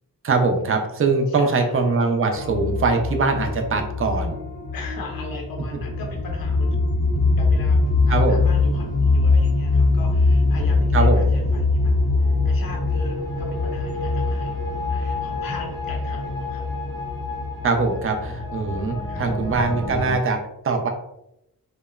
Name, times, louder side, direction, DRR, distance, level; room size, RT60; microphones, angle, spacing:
voice 1, 0.2-4.4 7.2-7.3 8.1-8.4 10.9-11.3 17.6-20.4 20.6-20.9, right 4 dB, 40° right, 4 dB, 0.4 m, -22 dB
voice 2, 1.3-1.9 4.7-6.7 7.4-7.8 8.1-16.6 19.1-19.6, left 4 dB, 70° left, 0 dB, 0.5 m, -38 dB
sound 1, 2.3-20.2, left 3 dB, 10° left, 0.6 m, -22 dB
2.8 x 2.0 x 2.2 m, 0.83 s
wide cardioid pair, 105°, 37 cm